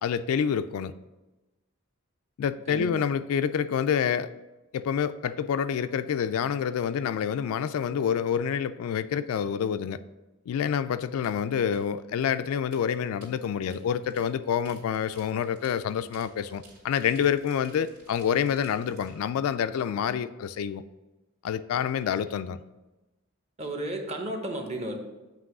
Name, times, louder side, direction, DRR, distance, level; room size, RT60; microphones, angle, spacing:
voice 1, 0.0-0.9 2.4-4.3 4.7-10.0 10.5-20.8 21.4-22.6, left 8 dB, 75° left, 0.3 m, -27 dB
voice 2, 2.7-3.0 23.6-25.0, right 1 dB, 30° right, 0.9 m, -33 dB
sound 1, 11.2-19.2, right 2 dB, 90° right, 2.2 m, -55 dB
7.6 x 3.0 x 5.9 m
head